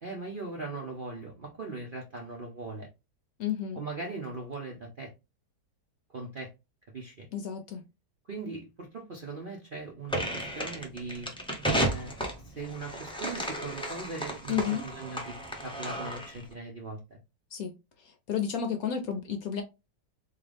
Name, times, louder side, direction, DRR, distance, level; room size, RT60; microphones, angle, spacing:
voice 1, 0.0-2.9 3.7-5.1 6.1-6.5 6.9-7.3 8.3-11.3 11.9-17.2, right 3 dB, 55° right, 0.6 m, -40 dB
voice 2, 3.4-3.8 7.3-7.8 14.5-14.8 17.5-17.7 18.3-19.6, left 8 dB, 65° left, 0.9 m, -31 dB
sound 1, 10.1-16.4, right 1 dB, 5° left, 0.4 m, -33 dB
3.8 x 2.9 x 3.3 m
omnidirectional pair, 1.9 m